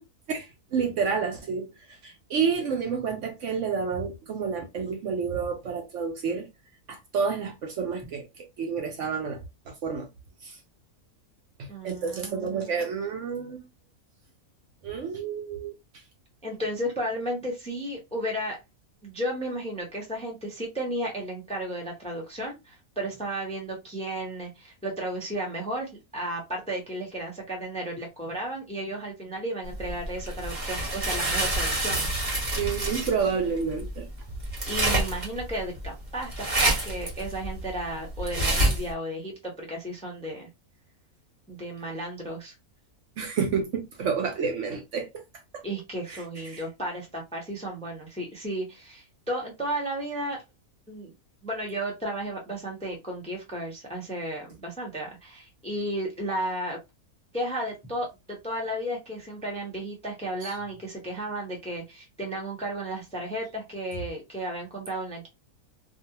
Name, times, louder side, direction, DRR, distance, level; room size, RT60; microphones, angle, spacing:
voice 1, 0.3-1.7 2.0-6.5 6.9-8.3 8.6-9.4 9.7-10.1 10.4-10.6 11.6-13.6 14.8-15.7 32.6-34.1 43.2-45.2 45.5-45.6 46.1-46.6 60.4-60.5, right 6 dB, 65° right, 0.8 m, -29 dB
voice 2, 11.7-12.8 16.4-18.6 19.0-32.1 34.7-40.5 41.5-42.5 45.6-50.4 50.9-51.1 51.4-56.8 57.3-58.1 58.4-65.3, right 1 dB, 5° left, 0.6 m, -33 dB
sound 1, 29.7-38.9, right 1 dB, 30° right, 1.2 m, -28 dB
2.5 x 2.4 x 2.7 m
omnidirectional pair, 1.5 m